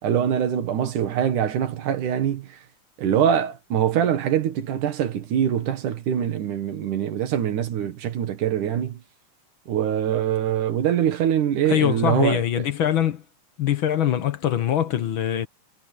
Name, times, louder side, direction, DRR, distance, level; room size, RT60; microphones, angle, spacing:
voice 1, 0.0-2.6 3.0-9.0 9.7-12.7, right 9 dB, 85° right, 3.2 m, -23 dB
voice 2, 11.7-13.2 13.6-15.5, left 10 dB, 55° left, 1.6 m, -23 dB
omnidirectional pair, 3.5 m